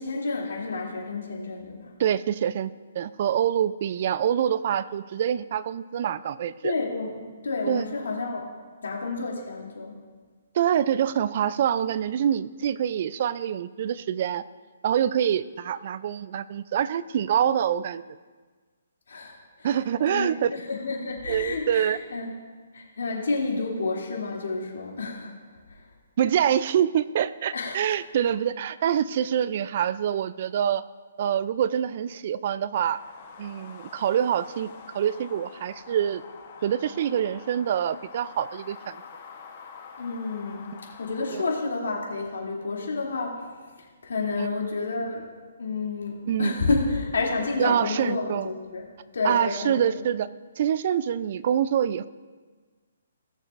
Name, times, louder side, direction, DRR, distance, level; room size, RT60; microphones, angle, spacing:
voice 1, 0.0-1.9 6.6-8.4 8.8-9.9 19.1-19.7 20.1-22.3 22.7-25.3 25.7-25.9 27.5-27.8 40.0-43.4 43.8-45.3 45.6-48.8 49.1-49.9, left 3 dB, 80° left, -2 dB, 2.7 m, -30 dB
voice 2, 2.0-6.7 7.7-7.8 10.5-14.4 14.8-18.0 19.6-20.5 21.3-22.0 26.2-30.8 31.2-33.0 33.4-36.2 36.6-39.0 41.3-41.4 44.4-44.5 46.3-46.5 47.6-48.5 49.2-50.3 50.6-52.1, right 9 dB, 40° right, 16 dB, 0.3 m, -25 dB
sound 1, 32.7-41.5, left 6 dB, 35° left, 1.0 m, -46 dB
19.0 x 6.7 x 2.5 m, 1.4 s
hypercardioid pair, 165°, 0 cm